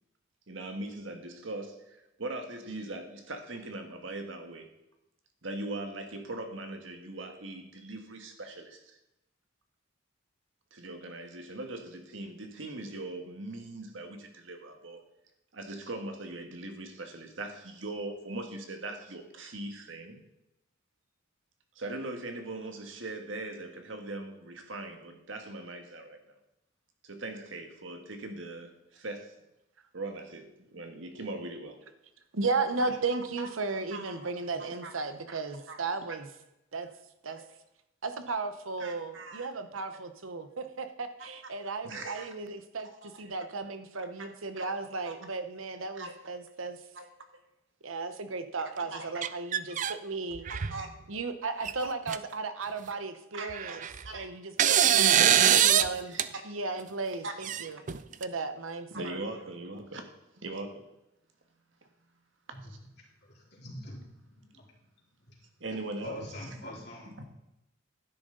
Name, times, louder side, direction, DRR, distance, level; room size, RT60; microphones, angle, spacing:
voice 1, 0.5-4.7 5.4-9.0 10.7-15.0 15.5-20.2 21.7-26.2 27.0-29.3 29.9-31.8 32.8-34.3 34.6-35.0 35.5-35.8 37.4-37.5 38.8-39.5 39.9-40.0 41.2-42.3 42.8-43.3 44.2-44.8 45.0-45.2 45.9-46.2 46.9-47.4 48.7-49.2 50.5-50.9 52.9-53.0 53.3-54.2 55.0-56.4 57.2-57.3 58.9-60.1 60.4-60.8 62.7-62.8 65.6-66.3 67.2-67.3, right 2 dB, 70° right, 5 dB, 1.6 m, -41 dB
voice 2, 32.3-36.3 36.7-36.9 37.2-37.4 38.0-42.9 43.2-46.8 47.8-50.4 51.1-53.8 54.1-55.2 55.6-56.2 56.4-57.8 58.2-59.2, right 3 dB, 90° right, 9 dB, 1.0 m, -35 dB
sound 1, 49.2-49.9 50.4-50.8 51.6-51.7 52.1-52.2 53.5-54.1 54.6-55.9 56.2-56.3 57.4-58.2, right 10 dB, 40° right, 0.4 m, -23 dB
voice 3, 63.3-64.0 64.5-64.7 65.3-65.4 65.7-67.3, left 1 dB, 55° left, -3 dB, 3.5 m, -44 dB
12.0 x 10.0 x 3.9 m, 0.87 s
head